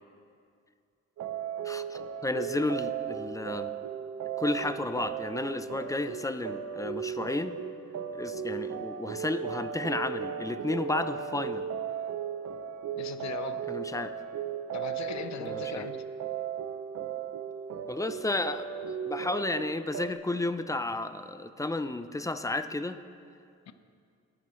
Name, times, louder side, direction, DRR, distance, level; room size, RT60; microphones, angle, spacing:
sound 1, 1.2-20.1, right 8 dB, 60° right, 0.7 m, -36 dB
voice 1, 1.6-3.7 4.4-7.6 8.1-11.7 13.7-14.1 15.4-15.9 17.9-18.7 19.1-23.0, left 2 dB, 10° left, 10 dB, 0.6 m, -32 dB
voice 2, 13.0-13.6 14.7-16.0 23.7-23.8, left 8 dB, 65° left, 10 dB, 0.9 m, -39 dB
23.0 x 9.8 x 3.2 m, 2.3 s
cardioid pair, 90°, 30 cm